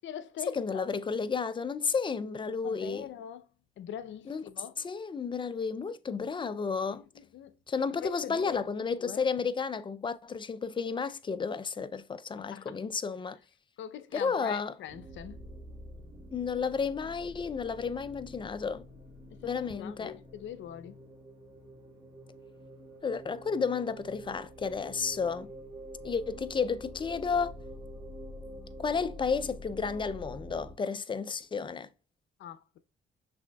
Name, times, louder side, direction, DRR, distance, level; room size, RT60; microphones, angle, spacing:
voice 1, 0.0-0.9 2.6-3.4 3.8-4.7 6.9-7.6 8.0-9.3 12.4-12.8 13.8-15.4 19.3-21.0 32.4-32.8, left 10 dB, 70° left, 0.6 m, -43 dB
voice 2, 0.5-3.1 4.3-4.4 4.8-7.0 7.7-13.4 14.1-14.7 16.3-18.8 19.4-20.2 23.0-25.5 26.0-27.5 28.8-31.9, left 5 dB, 25° left, 0.4 m, -32 dB
sound 1, 14.9-30.7, equal, 25° right, 2.2 m, -47 dB
6.1 x 3.4 x 2.2 m
cardioid pair, 90°, 20 cm